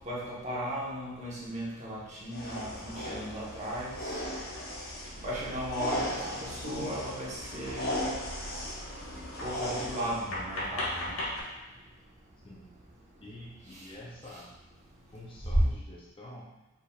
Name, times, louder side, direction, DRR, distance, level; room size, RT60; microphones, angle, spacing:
voice 1, 0.1-4.2 5.2-8.0 9.4-11.2, equal, 35° right, -6 dB, 1.1 m, -36 dB
sound 1, 2.3-10.2, left 1 dB, 45° left, 0.9 m, -37 dB
sound 2, 5.7-5.8 7.4-7.5 7.8-8.0 8.7-8.8 9.3-11.4, left 1 dB, 85° left, 1.1 m, -36 dB
voice 2, 12.4-12.7 13.2-14.6 15.1-16.6, left 1 dB, 25° left, -4 dB, 0.5 m, -47 dB
5.1 x 4.4 x 2.4 m, 1.0 s
head